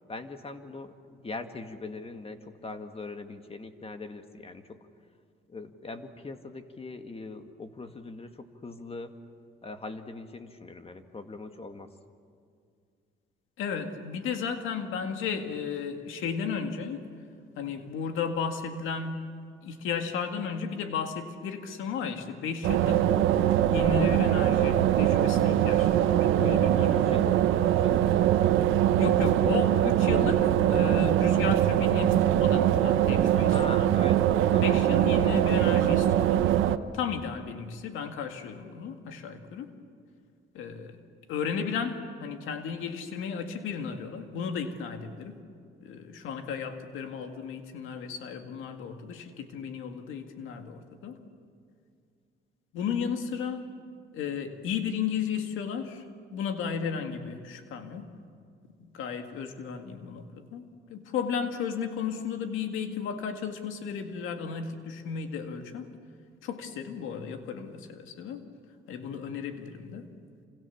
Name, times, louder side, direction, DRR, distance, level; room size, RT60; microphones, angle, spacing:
voice 1, 0.1-4.8 5.5-9.2 9.6-11.9 26.9-28.5 33.5-34.9, left 3 dB, 30° left, 7 dB, 1.9 m, -41 dB
voice 2, 13.6-17.1 17.6-19.3 19.6-23.1 23.7-27.1 29.0-33.9 34.6-36.5 36.9-39.7 40.5-41.0 41.3-45.4 45.8-51.2 52.7-53.7 54.1-56.1 56.3-58.1 58.8-65.9 66.4-68.5 68.9-70.1, left 6 dB, 90° left, 6 dB, 2.1 m, -34 dB
sound 1, 22.6-36.8, right 11 dB, 90° right, 0.9 m, -23 dB
27.5 x 27.0 x 7.2 m, 2.3 s
cardioid pair, 90°, 20 cm